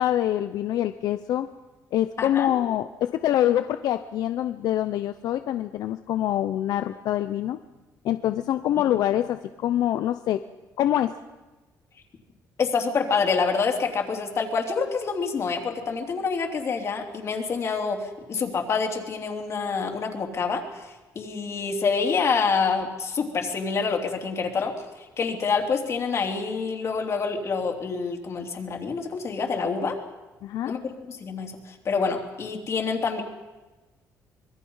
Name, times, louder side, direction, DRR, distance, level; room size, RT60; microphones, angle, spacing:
voice 1, 0.0-1.5 1.9-7.6 8.0-10.4 10.8-11.1 30.4-30.7, left 12 dB, 75° left, 10 dB, 0.7 m, -25 dB
voice 2, 2.2-2.5 12.6-30.0 30.6-30.8 31.1-33.2, left 5 dB, 45° left, 2 dB, 3.3 m, -27 dB
25.5 x 21.5 x 5.6 m, 1.1 s
cardioid pair, 125°, 7 cm